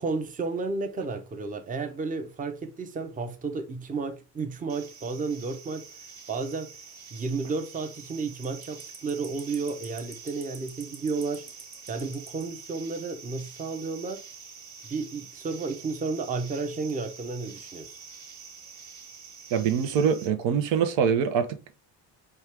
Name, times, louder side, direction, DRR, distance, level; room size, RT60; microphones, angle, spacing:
voice 1, 0.0-6.0 6.3-6.8 7.1-11.4 11.9-14.2 14.8-18.0, right 4 dB, 20° right, 0.5 m, -32 dB
sound 1, 4.7-20.3, right 5 dB, 40° right, 1.1 m, -46 dB
voice 2, 19.5-21.5, right 7 dB, 85° right, 0.7 m, -24 dB
4.4 x 2.4 x 3.3 m
cardioid pair, 105°, 44 cm